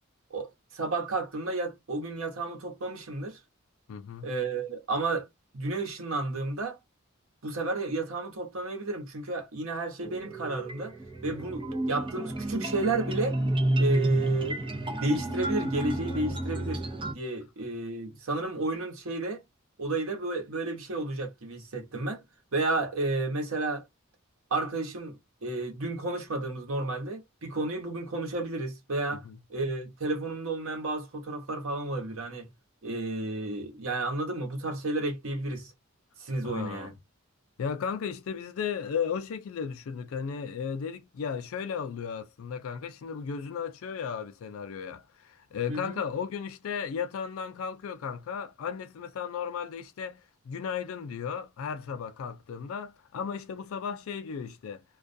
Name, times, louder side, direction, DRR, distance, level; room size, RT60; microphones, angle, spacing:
voice 1, 0.3-3.4 4.2-5.3 5.5-6.8 7.4-10.9 11.2-13.4 13.8-14.6 15.0-16.8 17.1-19.4 19.8-22.2 22.5-23.8 24.5-29.2 29.5-32.5 32.8-35.7 36.2-36.9 45.7-46.0, right 2 dB, 85° right, 0.9 m, -32 dB
voice 2, 3.9-4.3 29.1-29.4 36.4-36.9 37.6-54.8, left 6 dB, 80° left, 0.4 m, -35 dB
sound 1, 10.0-17.1, right 1 dB, 25° right, 0.5 m, -30 dB
2.3 x 2.2 x 2.5 m
head